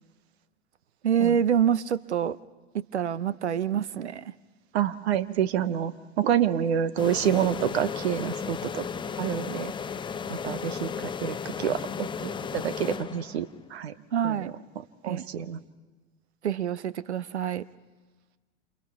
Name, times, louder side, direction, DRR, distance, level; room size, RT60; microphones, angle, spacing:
voice 1, 1.0-2.4 2.7-4.3 14.1-14.5 15.0-15.2 16.4-17.6, right 8 dB, 90° right, 19 dB, 0.6 m, -26 dB
voice 2, 4.7-5.9 6.2-8.9 9.2-9.7 10.3-13.9 14.2-14.3 15.0-15.6, right 9 dB, 70° right, 15 dB, 0.9 m, -28 dB
sound 1, 7.0-13.6, left 6 dB, 15° left, 0.6 m, -35 dB
28.5 x 28.0 x 3.6 m, 1.3 s
hypercardioid pair, 85°, 33 cm